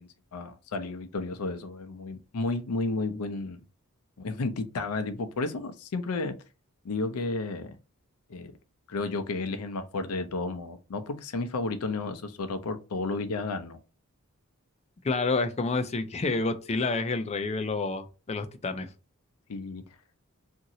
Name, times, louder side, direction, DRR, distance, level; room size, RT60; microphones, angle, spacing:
voice 1, 0.0-3.6 4.2-6.3 6.8-7.8 8.3-8.5 8.9-13.8 19.5-19.8, left 3 dB, 80° left, 0.5 m, -32 dB
voice 2, 15.0-18.9, left 3 dB, 30° left, 0.4 m, -29 dB
2.9 x 2.6 x 2.7 m
head